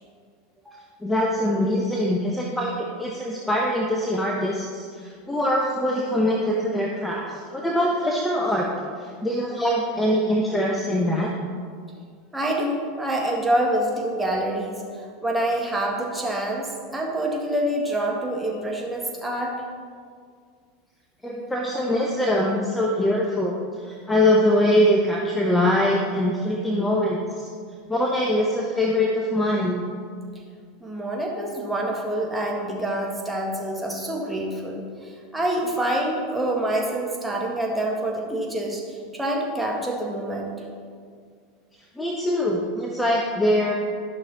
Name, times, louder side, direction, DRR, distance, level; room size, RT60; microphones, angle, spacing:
voice 1, 1.0-8.7 9.0-11.3 21.2-23.5 23.8-27.5 27.9-29.8 42.0-43.7, left 1 dB, 10° left, -1 dB, 1.0 m, -23 dB
voice 2, 12.3-19.6 30.8-40.5, right 1 dB, 5° right, -2 dB, 1.9 m, -26 dB
11.5 x 6.2 x 4.1 m, 2.1 s
hypercardioid pair, 85°, 0 cm